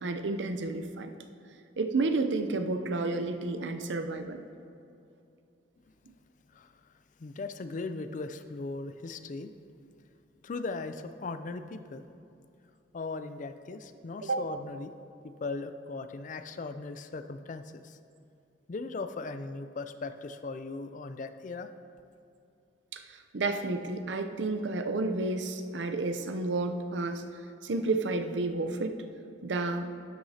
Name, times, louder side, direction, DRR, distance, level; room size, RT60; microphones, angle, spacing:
voice 1, 0.0-1.1 1.8-4.4 14.2-14.4 22.9-27.2 27.6-28.9 29.4-29.9, right 3 dB, 85° right, 7 dB, 0.6 m, -31 dB
voice 2, 7.2-9.5 10.4-12.0 12.9-14.9 15.4-18.0 18.7-21.7, left 3 dB, 45° left, 10 dB, 0.4 m, -38 dB
12.0 x 7.9 x 2.8 m, 2.6 s
head